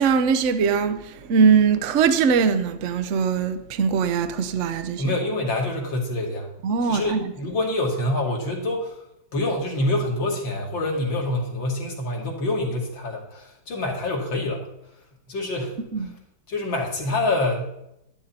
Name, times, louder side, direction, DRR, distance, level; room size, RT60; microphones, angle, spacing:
voice 1, 0.0-5.1 6.6-7.3 15.9-16.1, right 6 dB, 50° right, 1.0 m, -21 dB
voice 2, 5.0-6.5 6.8-9.0 9.3-14.7 15.3-16.1 16.5-17.7, left 2 dB, 75° left, 3.1 m, -26 dB
11.5 x 11.5 x 4.4 m
omnidirectional pair, 2.1 m